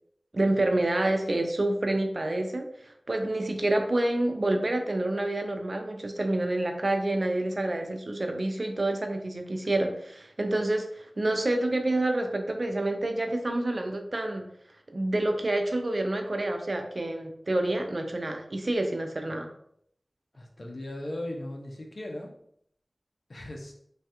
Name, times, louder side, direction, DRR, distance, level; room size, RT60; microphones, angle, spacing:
voice 1, 0.3-14.5 14.9-19.5, right 1 dB, 55° right, 5 dB, 0.4 m, -28 dB
voice 2, 20.3-22.3 23.3-23.7, left 1 dB, 70° left, 1 dB, 0.6 m, -37 dB
3.2 x 2.3 x 2.8 m, 0.69 s
wide cardioid pair, 50°, 0 cm